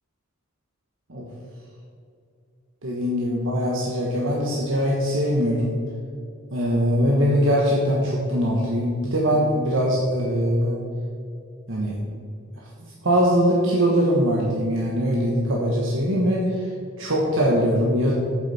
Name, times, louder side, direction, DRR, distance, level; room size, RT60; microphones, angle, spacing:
voice 1, 2.8-5.7 6.5-10.8 11.7-11.9 12.8-16.7 17.0-18.1, equal, 65° right, -3 dB, 1.3 m, -22 dB
8.8 x 7.7 x 4.3 m, 2.5 s
head